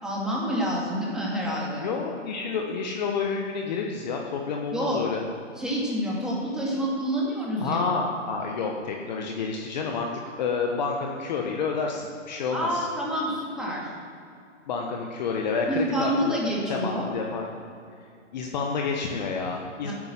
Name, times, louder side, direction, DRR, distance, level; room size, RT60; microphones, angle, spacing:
voice 1, 0.0-1.9 4.7-5.0 5.6-7.8 12.5-13.9 15.7-17.1 19.8-19.9, equal, ahead, -5 dB, 2.4 m, -28 dB
voice 2, 1.8-5.2 7.6-10.1 10.4-12.9 14.7-16.4 16.7-17.5 18.3-19.9, left 5 dB, 35° left, 1 dB, 1.2 m, -29 dB
9.7 x 9.4 x 7.6 m, 2.5 s
figure-of-eight pair, 140°, 38 cm